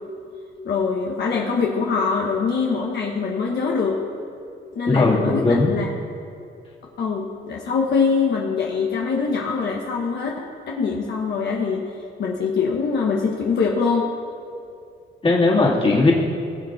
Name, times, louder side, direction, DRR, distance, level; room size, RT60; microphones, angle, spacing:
voice 1, 0.6-4.0 4.7-5.9 7.0-11.8 12.2-14.1, left 5 dB, 60° left, -1 dB, 1.1 m, -23 dB
voice 2, 4.9-5.7 15.2-16.1, left 3 dB, 30° left, -5 dB, 2.4 m, -18 dB
20.0 x 7.3 x 2.6 m, 2.6 s
cardioid pair, 90°, 20 cm